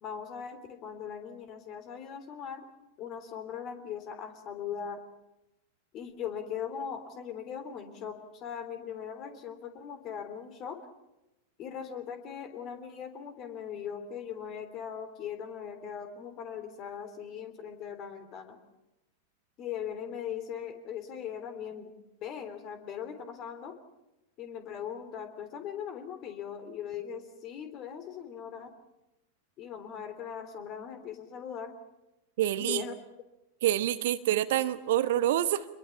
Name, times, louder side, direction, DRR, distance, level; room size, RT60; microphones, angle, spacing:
voice 1, 0.0-2.6 3.0-5.0 5.9-10.8 11.6-18.6 19.6-21.9 22.2-23.7 24.4-28.7 29.6-31.8 32.6-32.9, left 8 dB, 35° left, 9 dB, 3.3 m, -40 dB
voice 2, 32.4-32.8 33.6-35.7, right 12 dB, 55° right, 13 dB, 1.1 m, -27 dB
27.0 x 22.0 x 7.1 m, 0.95 s
figure-of-eight pair, 90°, 0 cm